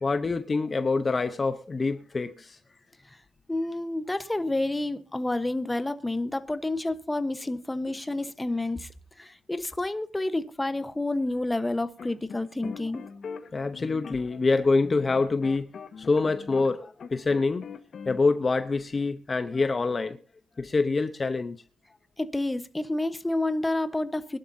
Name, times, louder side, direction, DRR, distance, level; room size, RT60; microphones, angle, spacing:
voice 1, 0.0-2.6 13.5-15.7 16.0-17.7 18.1-20.2 20.6-21.6, left 3 dB, 30° left, 0.9 m, -26 dB
voice 2, 3.5-8.9 9.2-13.0 22.2-24.4, left 2 dB, 10° left, 1.1 m, -29 dB
sound 1, 12.0-16.7 17.0-18.2, left 6 dB, 50° left, 1.6 m, -41 dB
23.0 x 11.5 x 2.8 m
cardioid pair, 90°, 0 cm